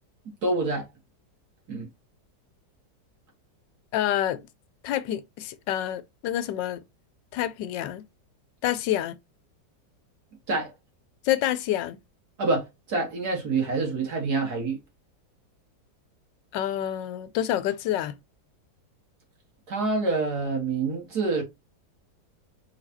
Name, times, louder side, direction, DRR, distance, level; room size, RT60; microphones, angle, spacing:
voice 1, 0.4-0.9 1.7-1.9 10.5-10.7 12.4-14.8 19.7-21.4, right 3 dB, 60° right, 2.4 m, -26 dB
voice 2, 3.9-4.4 4.8-6.8 7.3-8.0 8.6-9.2 11.2-12.0 16.5-18.1, left 12 dB, 90° left, 1.3 m, -27 dB
4.6 x 4.2 x 2.7 m
omnidirectional pair, 1.9 m